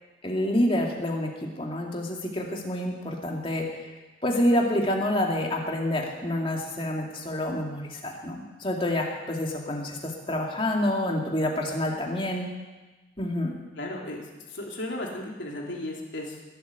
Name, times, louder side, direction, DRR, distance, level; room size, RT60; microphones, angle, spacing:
voice 1, 0.2-1.3 1.6-3.7 4.2-12.5 13.2-13.5, left 1 dB, 30° left, 0 dB, 2.4 m, -27 dB
voice 2, 13.8-14.2 14.5-16.4, left 1 dB, 80° left, -1 dB, 3.4 m, -35 dB
21.0 x 8.5 x 8.2 m, 1.2 s
head